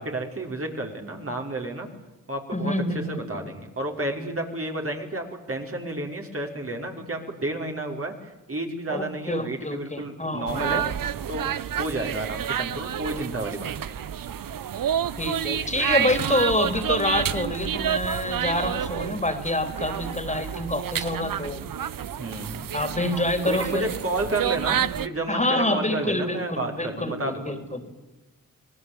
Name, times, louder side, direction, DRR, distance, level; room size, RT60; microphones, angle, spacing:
voice 1, 0.0-1.9 2.3-2.7 3.1-10.8 11.3-14.0 22.2-22.7 23.5-27.9, right 2 dB, 40° right, 2 dB, 5.1 m, -31 dB
voice 2, 2.5-3.5 8.9-10.8 15.2-21.6 22.7-23.9 25.3-27.9, left 1 dB, 20° left, 8 dB, 3.6 m, -27 dB
sound 1, 10.5-25.1, right 9 dB, 70° right, 1.0 m, -29 dB
26.5 x 19.0 x 8.8 m, 1.1 s
cardioid pair, 55°, 35 cm